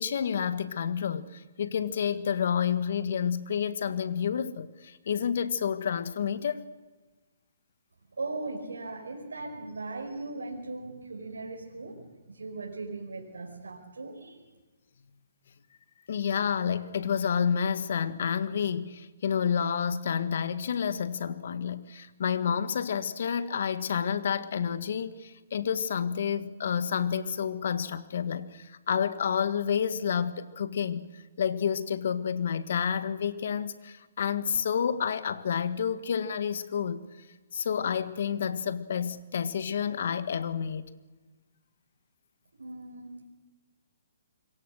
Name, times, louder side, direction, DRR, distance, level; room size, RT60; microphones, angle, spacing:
voice 1, 0.0-6.6 16.1-37.3 37.5-40.9, left 7 dB, 60° left, 12 dB, 1.7 m, -29 dB
voice 2, 8.1-14.5 42.6-43.3, right 3 dB, 85° right, 0 dB, 5.1 m, -39 dB
26.5 x 23.0 x 6.6 m, 1.3 s
hypercardioid pair, 140°, 0 cm